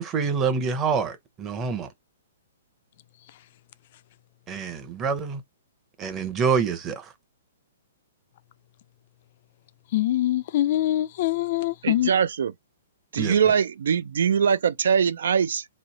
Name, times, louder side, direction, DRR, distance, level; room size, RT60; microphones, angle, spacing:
voice 1, 0.0-1.9 4.5-5.4 6.0-7.1 13.2-13.4, right 5 dB, 20° right, 0.8 m, -26 dB
voice 2, 9.9-12.1, left 14 dB, 50° left, 0.3 m, -24 dB
voice 3, 11.8-12.5 13.1-15.6, right 7 dB, 75° right, 0.3 m, -22 dB
3.1 x 2.6 x 4.1 m
hypercardioid pair, 150°, 0 cm